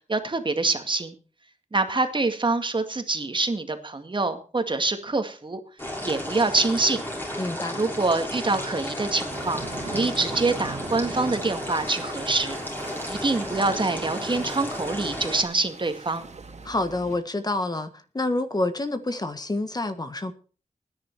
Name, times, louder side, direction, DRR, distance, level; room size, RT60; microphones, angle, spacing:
voice 1, 0.1-1.1 1.7-5.6 6.0-7.0 7.7-12.6 13.0-16.3, right 3 dB, 40° right, 2.1 m, -25 dB
sound 1, 5.8-15.4, left 1 dB, 15° left, 6.3 m, -33 dB
voice 2, 7.4-7.8 16.6-20.3, left 2 dB, 30° left, 1.6 m, -28 dB
sound 2, 9.3-17.2, right 4 dB, 60° right, 2.3 m, -40 dB
20.0 x 10.0 x 4.7 m
wide cardioid pair, 80°, 13 cm